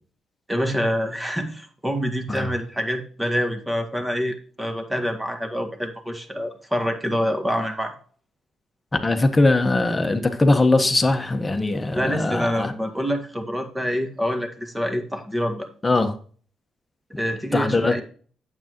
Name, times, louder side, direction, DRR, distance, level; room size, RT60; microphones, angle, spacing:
voice 1, 0.5-7.9 11.9-15.7 17.2-18.0, equal, 10° right, 5 dB, 1.8 m, -26 dB
voice 2, 9.0-12.7 15.8-16.1 17.5-18.0, left 2 dB, 20° left, 7 dB, 1.3 m, -20 dB
9.0 x 7.8 x 3.0 m, 0.43 s
cardioid pair, 90°, 0 cm